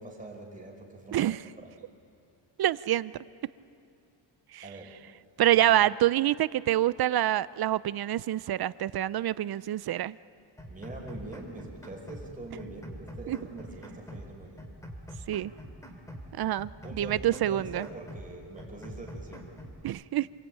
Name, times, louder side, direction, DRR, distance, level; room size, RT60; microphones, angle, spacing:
voice 1, 0.0-1.9 4.6-5.0 5.5-5.8 10.7-14.7 16.8-19.5, right 2 dB, 20° right, -1 dB, 4.9 m, -44 dB
voice 2, 1.1-1.4 2.6-3.1 4.5-4.7 5.4-10.1 13.3-13.4 15.3-15.5 16.3-16.7 17.0-17.9 19.8-20.3, right 13 dB, 55° right, 18 dB, 0.5 m, -26 dB
sound 1, 10.6-12.3 12.6-14.3 14.6-16.3 16.6-18.3 18.6-19.8, equal, 5° left, 2.8 m, -44 dB
27.0 x 21.5 x 9.0 m, 2.6 s
wide cardioid pair, 140°, 44 cm